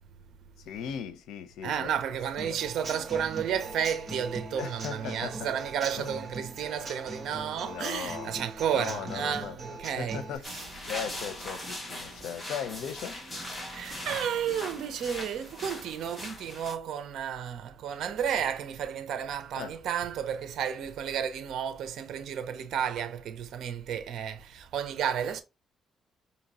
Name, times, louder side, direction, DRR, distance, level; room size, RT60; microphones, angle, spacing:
voice 1, 0.6-1.9 2.4-2.6 4.5-5.5 5.9-6.2 7.6-8.4 8.7-13.2 19.5-19.8, left 8 dB, 85° left, 0.7 m, -38 dB
voice 2, 1.6-10.2 10.5-10.6 13.6-25.4, right 8 dB, 75° right, 0.7 m, -32 dB
Human voice / Acoustic guitar / Drum, 2.4-10.4, right 2 dB, 45° right, 1.4 m, -41 dB
sound 1, 10.4-16.7, left 1 dB, 15° left, 2.0 m, -40 dB
5.2 x 2.9 x 2.9 m
cardioid pair, 90°, 0 cm